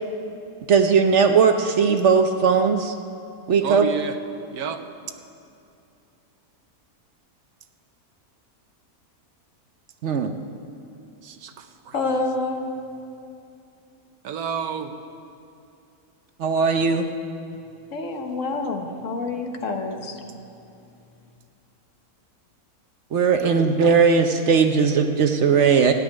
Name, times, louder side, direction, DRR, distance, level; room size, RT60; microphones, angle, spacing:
voice 1, 0.7-2.9 3.5-3.9 10.0-10.3 16.4-17.1 23.1-25.9, right 5 dB, 60° right, 6 dB, 0.9 m, -18 dB
voice 2, 3.6-4.2 4.5-4.8 11.2-12.0 14.2-14.9 23.4-23.7, right 7 dB, 80° right, 8 dB, 1.3 m, -30 dB
voice 3, 11.9-12.7 17.9-20.2, left 3 dB, 60° left, 4 dB, 1.5 m, -27 dB
14.5 x 7.7 x 10.0 m, 2.6 s
omnidirectional pair, 1.6 m